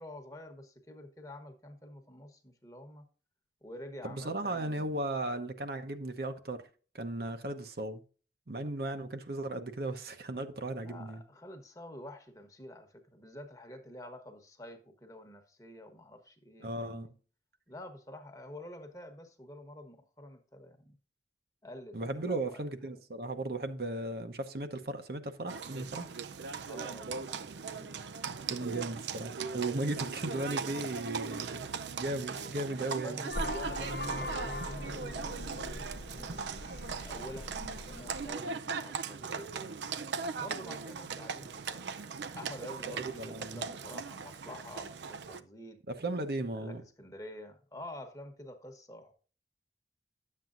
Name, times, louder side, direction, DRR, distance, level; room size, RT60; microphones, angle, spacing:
voice 1, 0.0-3.0 3.6-5.0 10.8-17.1 17.7-21.0 21.6-22.7 26.7-27.9 29.8-30.4 32.8-35.4 36.1-41.9 42.3-45.8 46.5-49.1, left 1 dB, 20° left, 1.1 m, -48 dB
voice 2, 4.0-6.6 6.9-8.0 8.5-11.2 16.6-17.1 21.9-26.1 28.3-31.7 32.0-33.3 42.9-43.6 45.9-46.8, right 2 dB, 60° right, 0.9 m, -36 dB
Livestock farm animals working animals, 25.5-45.4, right 5 dB, 85° right, 0.5 m, -39 dB
Vehicle horn car horn honking, 33.3-38.3, left 1 dB, 60° left, 0.9 m, -40 dB
10.5 x 7.6 x 2.5 m
head